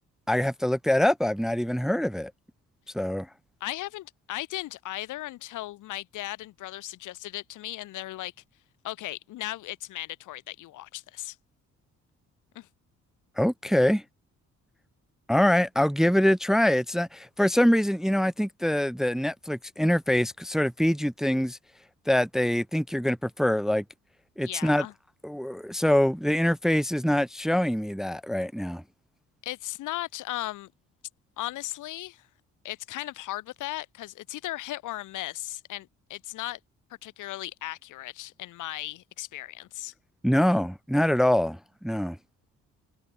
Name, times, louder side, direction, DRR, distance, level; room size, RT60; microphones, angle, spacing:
voice 1, 0.3-2.3 2.9-3.3 13.4-14.0 15.3-21.6 22.1-23.8 24.4-24.9 25.2-28.8 40.2-42.2, left 1 dB, ahead, 0.7 m, -24 dB
voice 2, 3.6-8.3 8.8-11.4 12.5-12.7 24.4-24.9 29.4-30.7 31.4-32.2 32.6-36.6 37.0-39.9, left 16 dB, 90° left, 2.6 m, -36 dB
cardioid pair, 90°, 30 cm